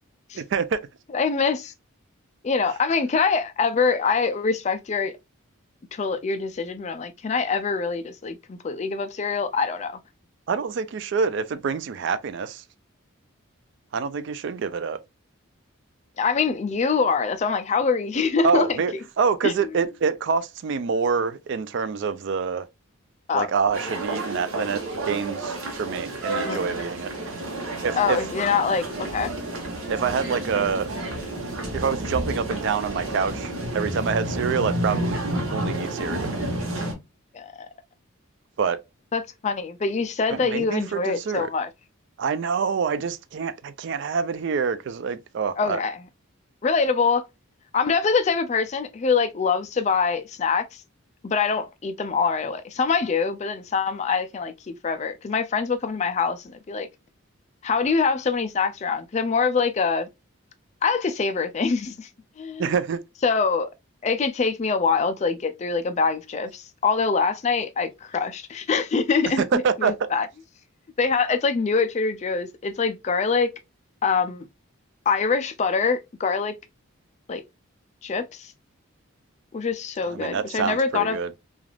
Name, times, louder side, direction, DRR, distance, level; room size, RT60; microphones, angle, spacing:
voice 1, 0.3-0.8 10.5-12.6 13.9-15.0 18.4-22.7 23.3-27.1 27.8-28.2 29.9-30.9 31.7-35.2 35.5-36.3 38.6-38.8 40.3-41.5 42.2-45.8 62.6-63.0 69.4-70.1 80.1-81.3, right 5 dB, 55° right, 0.3 m, -26 dB
voice 2, 1.1-1.7 2.4-5.1 5.9-10.0 16.2-18.8 19.4-19.6 23.3-23.5 26.4-26.8 27.9-28.8 29.1-29.4 37.3-37.7 39.1-41.7 45.6-46.0 46.6-47.3 47.7-50.8 51.2-56.9 57.6-60.1 60.8-62.1 62.4-62.7 63.2-63.7 64.0-70.3 71.0-73.5 74.0-74.5 75.1-76.5 77.3-77.4 78.0-78.5 79.5-81.2, left 5 dB, 30° left, 0.3 m, -24 dB
sound 1, 23.7-36.9, right 1 dB, 75° right, 0.9 m, -30 dB
3.2 x 2.4 x 2.3 m
head